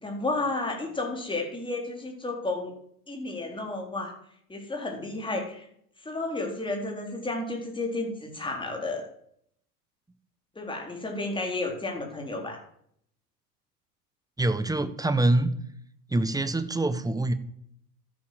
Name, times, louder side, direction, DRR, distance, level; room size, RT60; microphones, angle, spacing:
voice 1, 0.0-2.7 3.1-4.1 4.5-5.7 6.0-9.0 10.6-12.6, left 2 dB, 10° left, 1 dB, 4.0 m, -32 dB
voice 2, 14.4-15.5 16.1-17.3, right 2 dB, 10° right, 12 dB, 1.2 m, -25 dB
13.0 x 10.5 x 7.8 m, 0.70 s
hypercardioid pair, 85°, 47 cm